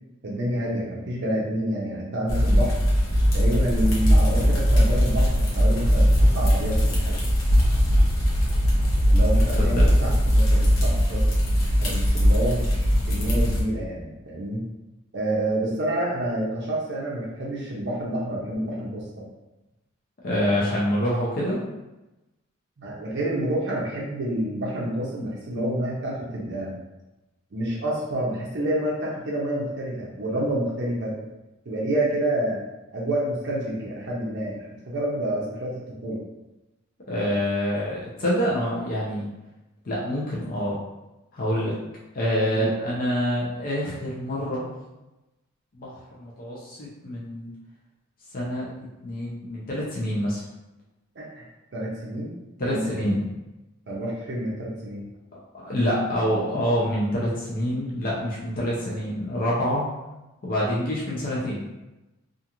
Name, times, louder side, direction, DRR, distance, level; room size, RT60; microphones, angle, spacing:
voice 1, 0.2-2.8 3.3-7.2 9.1-11.2 11.8-14.6 15.1-19.2 22.8-26.8 27.5-31.2 31.7-32.6 32.9-36.2 42.5-42.7 51.2-51.4 51.7-53.0 53.9-55.1, right 1 dB, 55° right, -4 dB, 0.5 m, -28 dB
sound 1, 2.3-13.6, equal, 75° left, 0.8 m, -20 dB
voice 2, 9.6-9.9 20.2-21.6 37.1-39.3 39.8-40.8 41.3-41.8 42.1-44.7 45.7-47.5 48.3-50.4 52.6-53.2 55.3-59.9 60.4-61.6, equal, 45° left, -6 dB, 0.5 m, -26 dB
2.4 x 2.4 x 2.8 m, 1.0 s
head